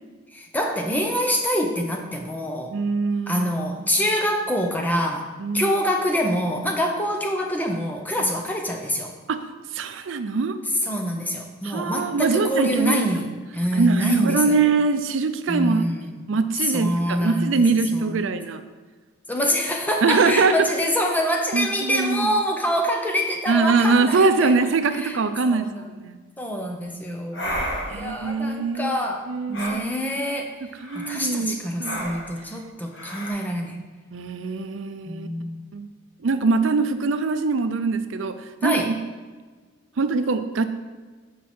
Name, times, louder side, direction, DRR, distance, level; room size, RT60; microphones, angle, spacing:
voice 1, 0.3-2.7 3.3-9.1 10.8-14.6 15.5-16.1 16.6-17.7 17.9-18.4 19.3-24.5 24.9-25.2 25.4-25.9 26.4-30.5 30.9-33.8 35.1-35.7 38.6-38.9, equal, 10° left, 2 dB, 0.6 m, -25 dB
voice 2, 2.7-3.5 4.0-4.1 5.4-5.8 8.2-8.3 9.3-9.4 9.7-10.6 11.6-13.0 13.7-15.8 16.3-18.6 20.0-20.7 21.5-22.3 23.5-26.2 27.9-29.0 29.3-29.8 30.6-32.0 34.1-35.3 35.7-35.9 36.2-38.4 38.6-38.9 40.0-40.7, right 4 dB, 80° right, 10 dB, 0.5 m, -23 dB
sound 1, 27.3-28.1 29.5-29.8 30.8-31.2 31.8-32.3 32.9-33.3, equal, 65° left, 1.6 m, -31 dB
7.4 x 4.6 x 4.3 m, 1.4 s
head